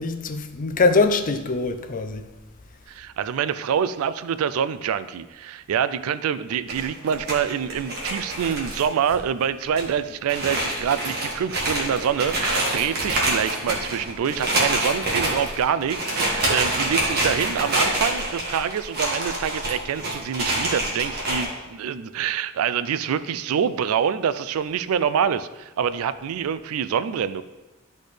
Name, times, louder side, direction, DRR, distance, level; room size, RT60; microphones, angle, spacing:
voice 1, 0.0-2.2, left 3 dB, 40° left, 0.5 m, -22 dB
voice 2, 2.9-27.4, right 8 dB, 90° right, 0.3 m, -26 dB
sound 1, 6.7-9.2 9.4-9.5 9.7-9.8 10.3-21.4, right 1 dB, 50° right, 1.7 m, -26 dB
11.5 x 4.2 x 3.3 m
head